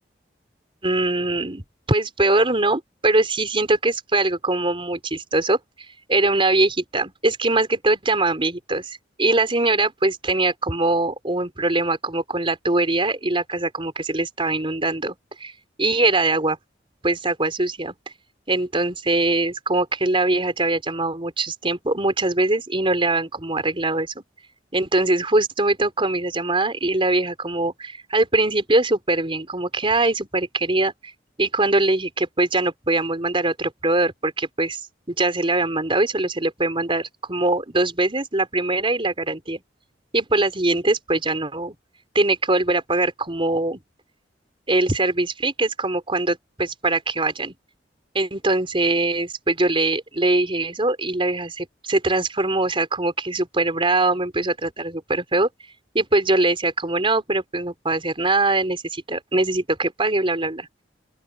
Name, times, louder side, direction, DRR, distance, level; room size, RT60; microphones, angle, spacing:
voice 1, 0.8-5.6 6.1-15.5 15.8-16.6 17.0-17.9 18.5-24.2 24.7-30.9 31.4-34.8 35.1-39.6 40.1-41.7 42.1-43.8 44.7-47.5 48.1-55.5 55.9-60.7, right 2 dB, 30° right, 4.4 m, -22 dB
open air
head